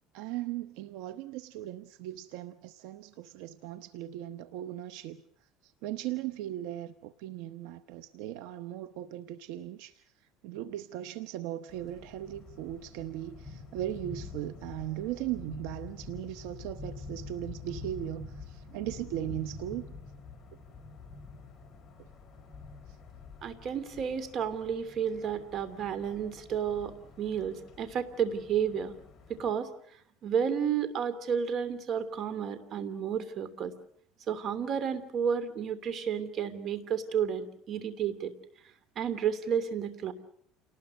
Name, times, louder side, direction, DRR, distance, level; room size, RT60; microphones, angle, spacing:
voice 1, 0.1-19.8 22.0-22.1 22.9-23.0, right 13 dB, 75° right, 0.9 m, -38 dB
sound 1, 11.7-29.5, left 3 dB, 25° left, 4.5 m, -47 dB
voice 2, 23.4-28.9 29.3-29.7 30.2-33.7 34.3-38.3 39.0-40.1, right 7 dB, 45° right, 2.9 m, -31 dB
29.0 x 19.5 x 6.4 m
cardioid pair, 135°, 0 cm